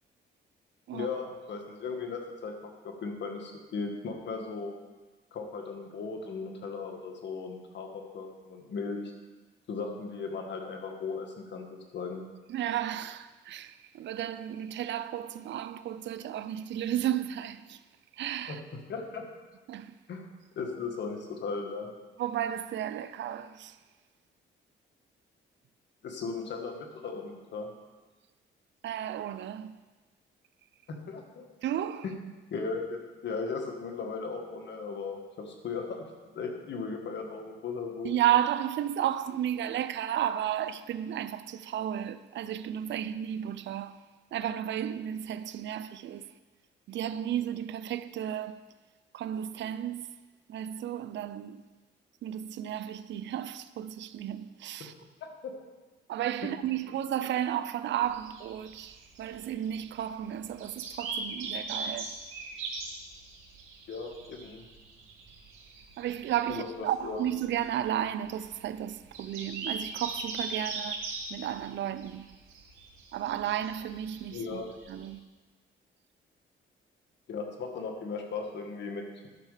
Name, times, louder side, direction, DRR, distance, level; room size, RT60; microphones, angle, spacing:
voice 1, 0.9-2.5 2.8-4.8 5.3-9.1 9.7-11.7 11.9-12.2 18.5-18.6 18.9-19.3 20.1-20.2 20.5-21.9 26.0-27.7 30.9-31.4 32.0-32.1 32.5-36.1 36.3-38.1 55.2-55.5 56.4-56.5 63.9-64.7 66.5-67.3 74.3-74.8 77.3-79.3, left 4 dB, 65° left, 1.7 m, -37 dB
voice 2, 12.5-17.8 18.1-18.6 19.7-19.9 22.2-23.8 28.8-29.8 31.6-32.1 38.0-44.0 44.3-46.3 46.9-48.7 49.1-50.1 50.5-51.6 52.2-54.9 56.1-62.2 66.0-72.3 73.1-75.2, right 11 dB, 65° right, 0.5 m, -33 dB
sound 1, 58.0-75.1, right 4 dB, 90° right, 2.1 m, -40 dB
11.5 x 6.5 x 5.0 m
cardioid pair, 90°, 20 cm